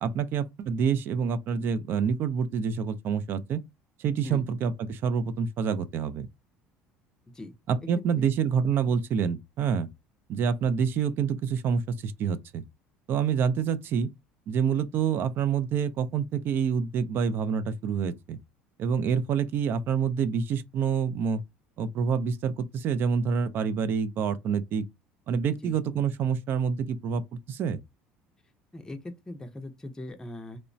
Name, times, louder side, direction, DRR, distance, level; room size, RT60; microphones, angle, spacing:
voice 1, 0.0-3.6 4.0-6.3 7.7-9.9 10.3-12.6 13.1-14.1 14.5-18.4 18.8-21.4 21.8-24.8 25.3-27.8, right 6 dB, 50° right, 0.3 m, -27 dB
voice 2, 7.8-8.3 8.8-8.9 25.6-25.7 28.7-30.6, left 1 dB, 15° left, 0.5 m, -40 dB
3.0 x 2.0 x 2.6 m
supercardioid pair, 100°, 5 cm